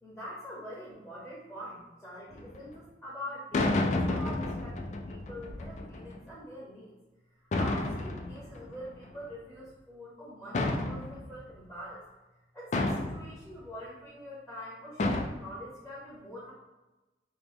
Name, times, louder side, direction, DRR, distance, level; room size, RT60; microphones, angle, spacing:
voice 1, 0.0-6.9 7.5-12.0 12.5-16.5, equal, 5° left, -7 dB, 0.8 m, -44 dB
sound 1, 2.3-2.6 3.5-6.2 7.5-9.2 10.5-11.5 12.7-13.4 15.0-15.3, left 2 dB, 40° left, 0.3 m, -31 dB
2.9 x 2.9 x 3.5 m, 1.1 s
head